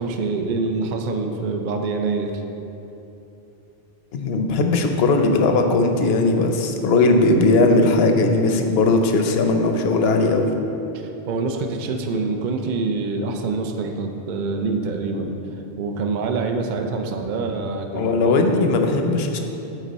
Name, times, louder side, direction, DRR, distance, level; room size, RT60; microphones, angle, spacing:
voice 1, 0.0-2.3 10.9-15.4 15.8-18.1, right 3 dB, 55° right, 4 dB, 0.6 m, -25 dB
voice 2, 4.1-10.5 17.9-19.4, left 2 dB, 70° left, 4 dB, 0.8 m, -18 dB
8.2 x 4.4 x 4.1 m, 3.0 s
omnidirectional pair, 1.1 m